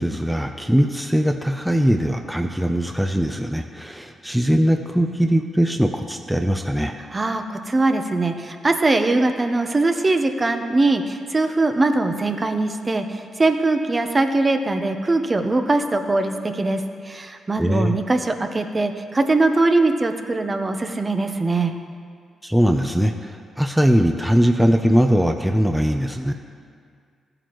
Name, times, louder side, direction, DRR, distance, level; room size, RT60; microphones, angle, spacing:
voice 1, 0.0-7.0 17.6-17.9 22.4-26.3, equal, 5° right, 5 dB, 0.6 m, -20 dB
voice 2, 7.1-21.7, right 2 dB, 30° right, 6 dB, 0.9 m, -21 dB
15.0 x 9.0 x 3.1 m, 2.1 s
supercardioid pair, 50°, 0 cm